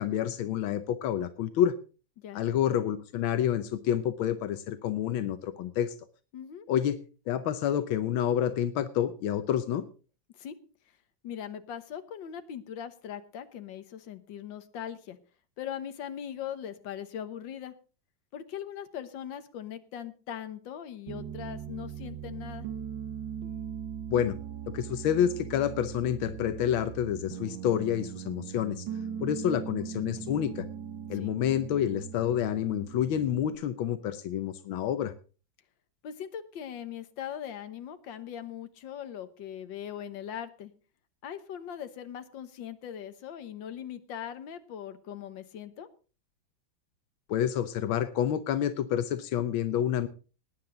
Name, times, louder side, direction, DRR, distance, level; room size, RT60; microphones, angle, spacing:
voice 1, 0.0-1.7 2.3-5.9 6.7-7.0 7.3-9.8 24.1-24.3 24.7-28.9 29.2-30.7 31.1-35.1 47.3-50.1, left 10 dB, 90° left, 11 dB, 1.6 m, -28 dB
voice 2, 6.3-6.7 10.4-10.6 11.2-15.2 15.6-17.7 18.3-22.7 31.1-31.3 36.0-40.7 41.2-45.9, left 9 dB, 70° left, 10 dB, 1.8 m, -40 dB
Piano, 21.1-33.6, right 8 dB, 70° right, 2.0 m, -40 dB
19.0 x 9.8 x 3.9 m, 0.36 s
omnidirectional pair, 2.1 m